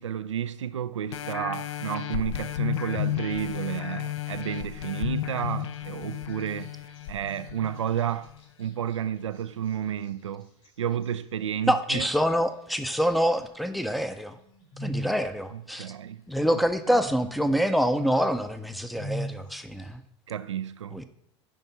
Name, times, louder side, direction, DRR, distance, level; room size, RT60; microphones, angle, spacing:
voice 1, 0.0-6.7 7.1-8.3 8.6-10.5 10.8-12.1 15.5-16.2 16.9-17.0 20.3-21.0, right 9 dB, 85° right, 0.4 m, -31 dB
sound 1, 1.1-8.3 8.8-8.9, left 12 dB, 70° left, 0.5 m, -33 dB
sound 2, 2.3-13.0 13.3-19.9, right 1 dB, 45° left, 3.6 m, -45 dB
voice 2, 11.7-14.4 14.8-15.9 16.3-20.0 20.9-21.0, equal, ahead, 0.6 m, -26 dB
10.0 x 3.6 x 5.3 m
hypercardioid pair, 80°, 15 cm